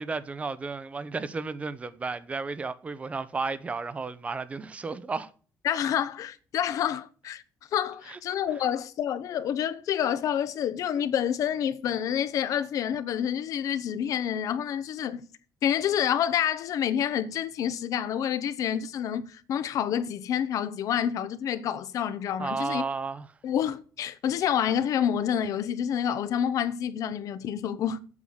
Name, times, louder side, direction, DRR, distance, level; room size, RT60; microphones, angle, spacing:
voice 1, 0.0-5.3 8.1-8.2 22.4-23.3, right 4 dB, 20° right, 0.8 m, -33 dB
voice 2, 5.6-7.4 7.7-15.2 15.6-22.8 23.4-28.0, left 9 dB, 60° left, 1.0 m, -28 dB
8.5 x 7.1 x 6.5 m
cardioid pair, 160°, 6 cm